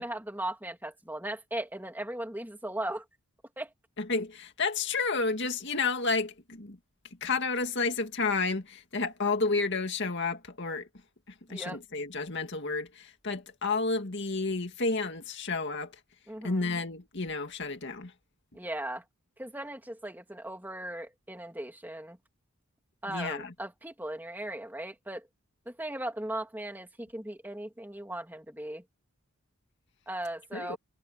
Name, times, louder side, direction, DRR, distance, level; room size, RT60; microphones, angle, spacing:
voice 1, 0.0-3.0 3.6-3.7 11.5-11.8 16.3-16.6 18.5-19.0 19.4-22.2 23.0-25.3 25.7-28.8 30.1-30.8, right 1 dB, 10° right, 2.8 m, -38 dB
voice 2, 4.0-6.8 7.2-10.9 11.5-15.9 16.4-18.1 23.1-23.5 30.5-30.8, left 3 dB, 50° left, 2.2 m, -31 dB
head